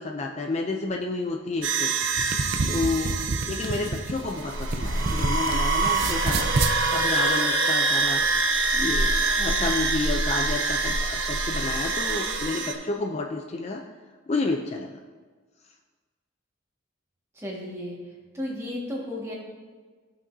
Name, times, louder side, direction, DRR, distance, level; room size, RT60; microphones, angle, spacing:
voice 1, 0.0-1.9 2.7-3.2 3.5-8.2 8.7-9.1 9.4-13.8 14.3-15.0, left 3 dB, 35° left, 3 dB, 0.4 m, -30 dB
sound 1, 1.6-12.7, right 3 dB, 80° right, 1.0 m, -25 dB
sound 2, 2.0-5.5 5.8-6.8, right 3 dB, 50° right, 0.5 m, -28 dB
voice 2, 17.3-18.0 18.3-19.3, left 1 dB, 15° right, -4 dB, 1.7 m, -33 dB
15.0 x 5.9 x 2.7 m, 1.4 s
head